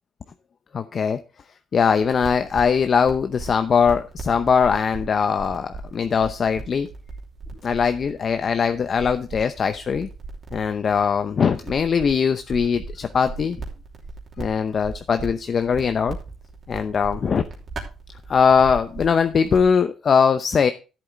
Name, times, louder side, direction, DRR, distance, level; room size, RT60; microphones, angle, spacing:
voice 1, 0.7-1.2 1.7-6.9 7.6-10.1 10.5-13.6 14.4-16.2 16.7-17.4 18.3-20.7, left 6 dB, 50° left, 9 dB, 0.7 m, -21 dB
sound 1, 2.0-19.7, right 3 dB, 45° right, 3.0 m, -38 dB
12.5 x 7.7 x 3.6 m, 0.32 s
cardioid pair, 90°, 0 cm